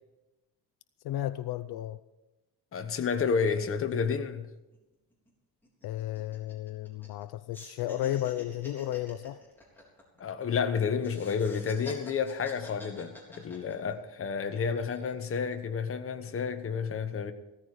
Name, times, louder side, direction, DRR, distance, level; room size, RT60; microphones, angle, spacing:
voice 1, 1.0-2.0 5.8-9.4, left 13 dB, 70° left, 13 dB, 0.6 m, -33 dB
voice 2, 2.7-4.5 10.2-17.3, left 6 dB, 35° left, 7 dB, 1.1 m, -30 dB
sound 1, 4.7-4.8 5.1-5.3 5.6-7.2 7.5-10.6 11.0-14.1 14.6-15.1, left 1 dB, 5° left, 3.9 m, -48 dB
15.5 x 14.0 x 5.0 m, 1.0 s
cardioid pair, 155°, 39 cm